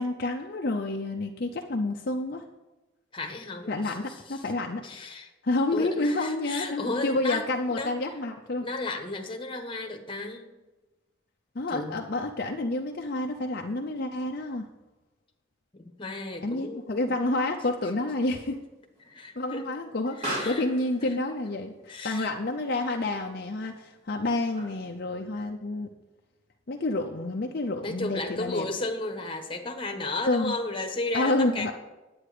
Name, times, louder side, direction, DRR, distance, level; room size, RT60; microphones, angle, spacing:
voice 1, 0.0-2.4 3.7-4.8 5.4-8.6 11.5-14.7 16.4-18.6 19.4-20.2 20.4-25.9 26.7-28.7 30.3-30.5 31.1-31.7, left 2 dB, 45° left, 2 dB, 0.6 m, -29 dB
voice 2, 3.1-4.4 4.8-5.3 5.7-7.4 7.7-8.1 8.6-10.5 11.7-12.0 15.7-17.3 19.0-19.6 20.2-20.6 21.0-21.1 21.9-22.3 27.8-31.7, left 2 dB, 25° left, 3 dB, 1.2 m, -34 dB
Explosion, 16.1-25.0, right 1 dB, 30° right, 3.6 m, -43 dB
10.0 x 8.8 x 5.0 m, 1.1 s
head